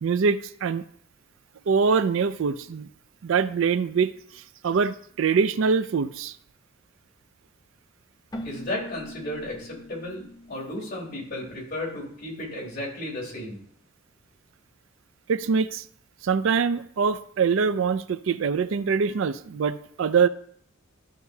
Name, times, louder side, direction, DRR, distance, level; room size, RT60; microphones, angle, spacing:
voice 1, 0.0-0.8 1.7-2.9 3.2-6.4 15.3-15.9 16.2-20.3, right 5 dB, 65° right, 14 dB, 0.4 m, -24 dB
Keyboard (musical), 8.3-11.9, equal, 20° left, 0.7 m, -43 dB
voice 2, 8.4-13.6, left 1 dB, 45° left, -5 dB, 3.9 m, -34 dB
13.5 x 5.7 x 2.7 m, 0.64 s
head